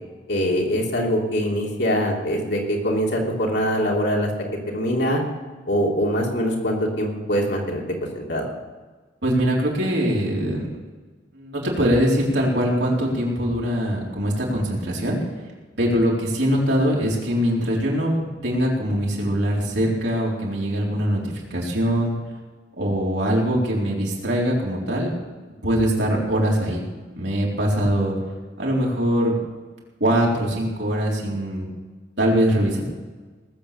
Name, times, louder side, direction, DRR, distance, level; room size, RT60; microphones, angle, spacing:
voice 1, 0.3-4.3 4.7-5.2 5.7-7.8 8.1-8.5, equal, 60° left, -1 dB, 3.1 m, -23 dB
voice 2, 9.2-10.7 11.3-15.2 15.8-22.1 22.8-25.1 25.6-26.9 27.2-28.1 28.6-29.4 30.0-31.7 32.2-32.8, equal, 65° right, -3 dB, 4.1 m, -22 dB
19.0 x 8.2 x 6.8 m, 1.3 s
head